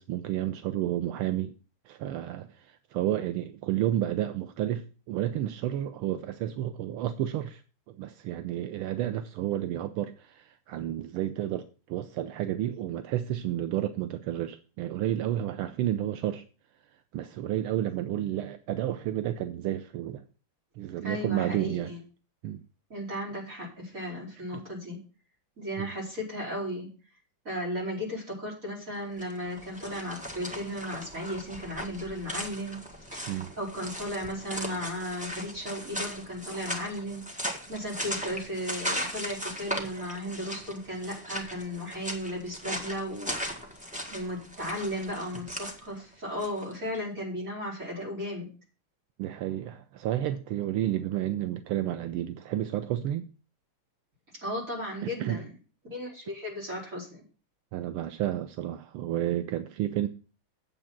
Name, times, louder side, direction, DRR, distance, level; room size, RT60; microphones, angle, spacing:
voice 1, 0.0-1.5 1.9-7.6 7.9-16.4 17.1-20.2 20.8-21.9 22.4-22.6 25.8-25.9 33.3-33.5 49.2-53.3 55.0-55.4 57.7-60.1, right 12 dB, 80° right, 1.5 m, -31 dB
voice 2, 21.0-22.0 22.9-25.0 25.6-26.9 27.4-43.4 44.1-48.5 54.4-55.5 55.9-57.2, equal, 35° right, 4.9 m, -35 dB
sound 1, 29.1-46.7, equal, 5° right, 1.4 m, -38 dB
9.0 x 7.7 x 5.9 m
omnidirectional pair, 2.4 m